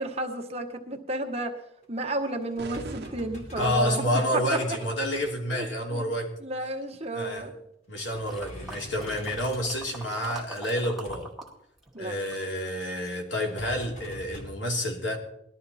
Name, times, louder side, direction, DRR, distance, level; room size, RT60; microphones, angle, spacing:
voice 1, 0.0-1.5 1.9-4.0 4.3-4.4 5.5-6.0 6.4-7.5 11.9-12.2, right 2 dB, 35° right, 3 dB, 1.5 m, -32 dB
sound 1, 1.8-4.0 4.5-5.3 6.8-6.9 7.4-7.6 7.9-10.4 11.1-11.2 13.3-14.5, equal, 40° left, 3.1 m, -44 dB
sound 2, 2.6-4.0, right 3 dB, 60° right, 0.8 m, -43 dB
voice 2, 3.6-6.3 7.1-7.5 7.9-11.3 12.0-15.2, equal, 75° left, 1 dB, 3.0 m, -29 dB
sound 3, 8.3-11.5 11.8-13.2 13.8-13.9, right 2 dB, ahead, 2.2 m, -44 dB
19.5 x 12.5 x 4.3 m, 0.77 s
head